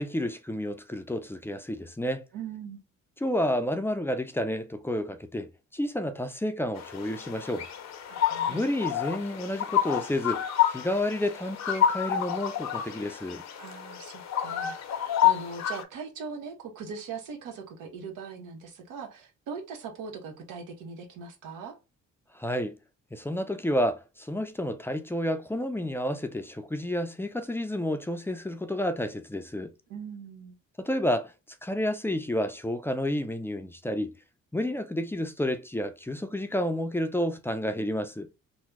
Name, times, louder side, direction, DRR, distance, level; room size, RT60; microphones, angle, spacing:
voice 1, 0.0-2.3 3.2-7.7 8.5-13.4 22.3-22.8 23.1-29.7 30.8-31.3 31.6-34.2 34.5-38.3, left 1 dB, 10° left, 0.4 m, -30 dB
voice 2, 2.3-2.8 8.1-8.6 13.6-21.7 29.9-30.6, right 5 dB, 90° right, 1.0 m, -40 dB
sound 1, 6.8-15.8, left 10 dB, 65° left, 0.6 m, -29 dB
2.9 x 2.0 x 3.4 m
cardioid pair, 90°, 30 cm